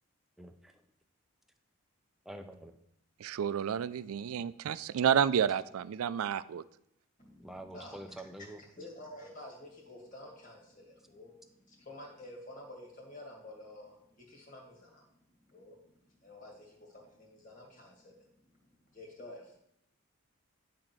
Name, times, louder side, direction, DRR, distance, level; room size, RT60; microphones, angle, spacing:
voice 1, 0.4-0.8 2.3-2.8 7.4-8.6, right 1 dB, ahead, 0.5 m, -46 dB
voice 2, 3.2-6.6, right 8 dB, 85° right, 0.4 m, -30 dB
voice 3, 7.2-8.5 8.7-19.6, left 1 dB, 40° left, 2.1 m, -51 dB
10.5 x 3.8 x 6.1 m
head